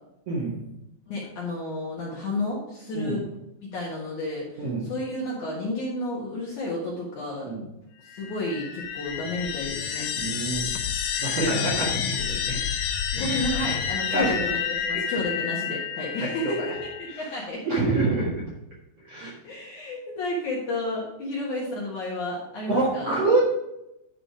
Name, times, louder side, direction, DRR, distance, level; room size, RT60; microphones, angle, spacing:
voice 1, 0.3-0.6 2.9-3.2 4.6-4.9 7.4-7.6 10.1-10.7 11.2-12.6 13.1-13.2 14.1-14.3 14.9-15.0 16.2-16.7 17.2-17.3 17.6-18.4 19.0-19.3 22.7-23.4, right 2 dB, 50° right, -6 dB, 2.0 m, -26 dB
voice 2, 1.1-3.2 3.6-7.4 8.0-10.1 13.1-17.7 19.4-23.2, left 2 dB, 55° left, -4 dB, 2.3 m, -31 dB
sound 1, 8.1-17.4, left 8 dB, 75° left, 2.8 m, -29 dB
11.0 x 5.0 x 4.8 m, 0.88 s
omnidirectional pair, 5.3 m